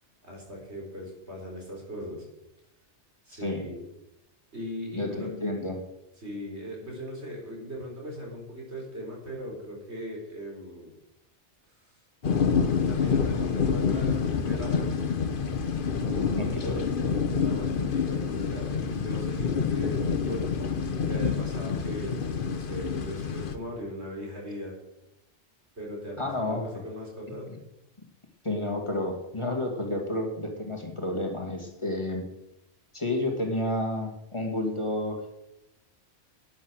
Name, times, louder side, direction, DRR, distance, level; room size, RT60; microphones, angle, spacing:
voice 1, 0.2-2.2 3.3-3.8 4.5-5.4 6.2-10.9 11.8-11.9 12.9-15.1 16.0-20.5 20.9-24.8 25.7-27.5, equal, 70° right, -2 dB, 4.5 m, -39 dB
voice 2, 4.9-5.8 16.3-16.9 26.2-26.8 27.5-27.6 28.4-32.2 32.9-35.3, left 1 dB, 25° left, 1 dB, 2.2 m, -30 dB
sound 1, 12.2-23.6, left 6 dB, 50° left, 1.1 m, -27 dB
11.5 x 10.5 x 6.4 m, 0.88 s
omnidirectional pair, 1.2 m